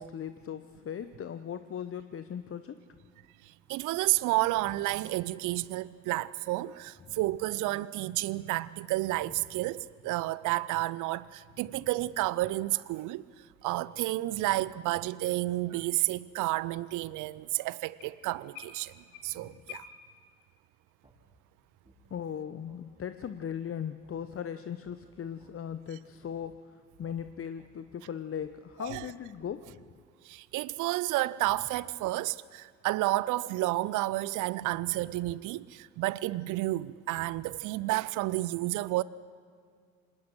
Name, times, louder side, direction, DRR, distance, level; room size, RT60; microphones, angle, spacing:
voice 1, 0.0-2.8 7.1-7.2 19.4-19.5 22.1-26.6 27.0-29.8, left 8 dB, 35° left, 0.9 m, -38 dB
voice 2, 3.4-13.2 13.6-18.9 19.2-19.8 28.8-29.1 30.2-39.0, right 18 dB, 50° right, 0.6 m, -31 dB
sound 1, 11.4-20.0, left 7 dB, 75° left, 3.0 m, -55 dB
sound 2, 21.0-21.2 21.8-22.0 22.7-22.8 23.2-23.4 24.0-24.2 24.8-25.0 25.4-25.5 26.2-26.3 27.0-27.2 27.6-27.7 28.4-28.5 29.2-29.4, right 1 dB, 15° right, 5.4 m, -62 dB
26.0 x 19.5 x 6.4 m
hypercardioid pair, 55°, 39 cm